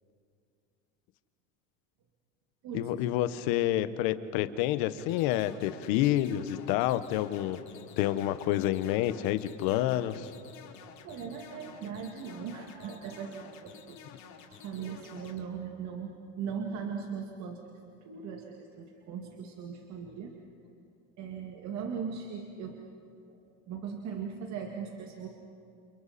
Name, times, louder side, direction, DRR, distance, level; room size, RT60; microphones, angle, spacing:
voice 1, 2.7-7.6 8.0-10.3, left 13 dB, 65° left, 12 dB, 1.2 m, -28 dB
sound 1, 5.0-15.4, left 7 dB, 50° left, 2.7 m, -51 dB
voice 2, 11.0-14.0 14.4-17.8 18.0-20.4 21.2-22.8 23.3-25.3, right 6 dB, 45° right, 2 dB, 2.1 m, -39 dB
29.5 x 29.0 x 4.3 m, 2.6 s
cardioid pair, 140°, 38 cm